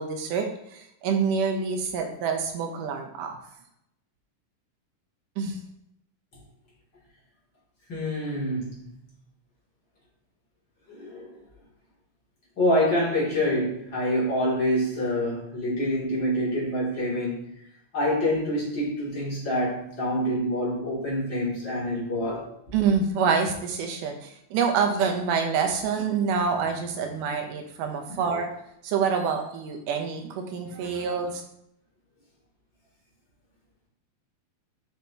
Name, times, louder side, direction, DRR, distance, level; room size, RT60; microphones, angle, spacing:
voice 1, 0.0-3.4 5.4-5.6 22.7-28.5 28.8-31.4, right 6 dB, 80° right, 4 dB, 2.4 m, -27 dB
voice 2, 7.9-8.8 10.9-11.3 12.6-17.5 17.9-22.5 28.1-28.3, left 1 dB, 35° left, -7 dB, 3.2 m, -26 dB
8.9 x 6.2 x 2.9 m, 0.76 s
omnidirectional pair, 3.7 m